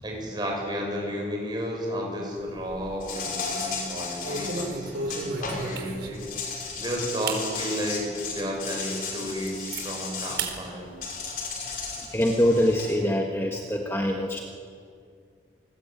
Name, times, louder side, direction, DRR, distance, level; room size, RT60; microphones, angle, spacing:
voice 1, 0.0-10.9, equal, 25° right, 0 dB, 6.9 m, -33 dB
sound 1, 2.4-3.1 3.5-3.7 4.2-6.3 6.8-6.9 7.2-7.5 8.0-8.1 8.6-8.7 9.0-9.8 10.4-10.6 10.9-11.9, right 3 dB, 70° right, 4.1 m, -34 dB
Insect, 3.0-5.8 6.1-10.4 11.0-12.9, left 4 dB, 50° left, 5.5 m, -34 dB
voice 2, 12.1-14.4, left 1 dB, 15° left, 1 dB, 1.5 m, -24 dB
28.0 x 21.0 x 9.1 m, 2.3 s
head